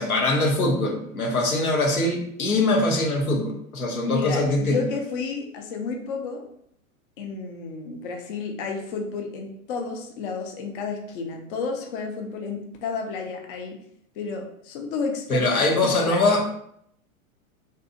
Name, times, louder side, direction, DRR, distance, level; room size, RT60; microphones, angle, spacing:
voice 1, 0.0-4.8 15.3-16.5, left 2 dB, 85° left, 1 dB, 0.7 m, -22 dB
voice 2, 4.1-6.4 7.2-13.8 14.2-16.2, left 4 dB, 40° left, 2 dB, 0.4 m, -31 dB
2.7 x 2.3 x 2.4 m, 0.70 s
figure-of-eight pair, 95°, 42 cm